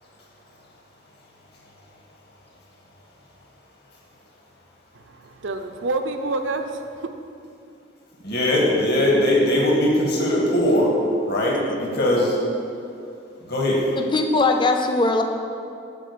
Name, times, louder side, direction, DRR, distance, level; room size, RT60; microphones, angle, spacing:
voice 1, 4.9-7.1, right 2 dB, 80° right, 6 dB, 0.6 m, -28 dB
voice 2, 8.2-10.9 11.2-12.4 13.4-13.8, left 1 dB, 60° left, -2 dB, 1.7 m, -20 dB
voice 3, 14.0-15.2, left 3 dB, 25° left, 4 dB, 0.5 m, -20 dB
7.6 x 4.6 x 6.7 m, 2.6 s
head